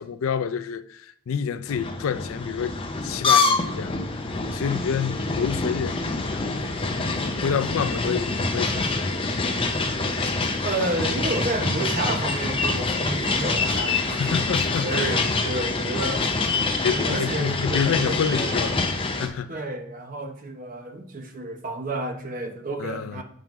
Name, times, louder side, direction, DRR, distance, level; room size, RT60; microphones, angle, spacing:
voice 1, 0.0-2.8 3.0-6.7 7.1-9.5 14.1-15.4 16.8-18.8 19.1-19.7 22.8-23.2, left 7 dB, 80° left, 0.4 m, -29 dB
sound 1, 1.7-19.3, left 3 dB, 25° left, 0.6 m, -26 dB
voice 2, 10.6-16.3 16.8-18.6 19.5-23.2, right 2 dB, 40° right, 0.7 m, -31 dB
7.3 x 5.3 x 3.0 m
head